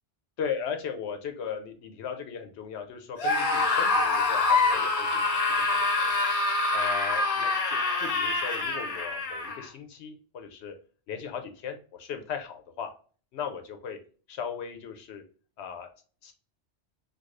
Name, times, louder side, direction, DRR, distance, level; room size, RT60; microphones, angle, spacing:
voice 1, 0.4-6.2 6.7-10.7 11.1-12.9 13.3-14.0 14.3-15.2 15.6-15.9 16.2-16.3, left 7 dB, 75° left, 6 dB, 0.8 m, -37 dB
Screaming, 3.2-9.7, left 3 dB, 40° left, 0.7 m, -26 dB
4.7 x 2.3 x 2.3 m, 0.40 s
omnidirectional pair, 1.2 m